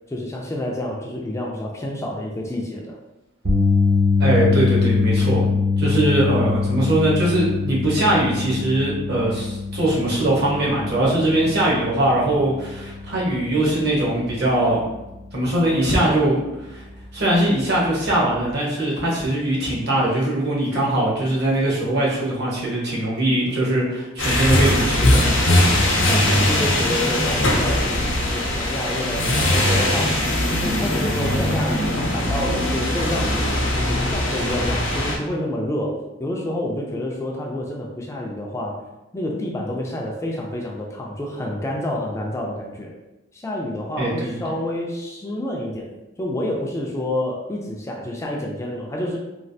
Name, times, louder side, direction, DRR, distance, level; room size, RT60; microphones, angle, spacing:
voice 1, 0.1-2.8 26.1-30.2 30.5-33.5 33.8-38.8 39.1-42.9 43.3-45.9 46.2-49.2, left 1 dB, 15° left, -1 dB, 0.3 m, -28 dB
sound 1, 3.5-15.7 16.0-16.3 18.5-18.6, left 4 dB, 40° right, 0.6 m, -23 dB
voice 2, 4.2-5.5 5.8-14.8 15.3-16.4 16.7-16.8 17.1-25.2 44.0-44.3, right 1 dB, 55° right, -5 dB, 1.0 m, -21 dB
sound 2, 24.2-35.2, left 1 dB, 90° left, 0.6 m, -20 dB
3.1 x 2.3 x 2.6 m, 0.99 s
head